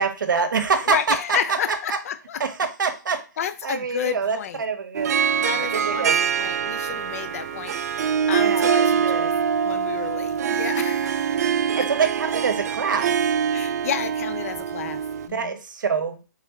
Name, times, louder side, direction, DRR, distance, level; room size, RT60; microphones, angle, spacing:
voice 1, 0.0-1.4 2.4-3.2 3.6-5.1 5.8-6.2 8.4-9.4 11.8-13.1 15.3-16.2, right 5 dB, 80° right, 8 dB, 0.8 m, -25 dB
voice 2, 0.9-2.4 3.1-4.6 5.4-9.3 9.6-11.5 11.7-11.9 13.5-15.0 15.3-15.6, left 8 dB, 50° left, 12 dB, 0.4 m, -31 dB
Harp, 5.0-15.3, right 7 dB, 55° right, 0.4 m, -24 dB
3.5 x 2.9 x 3.5 m, 0.32 s
hypercardioid pair, 150°, 10 cm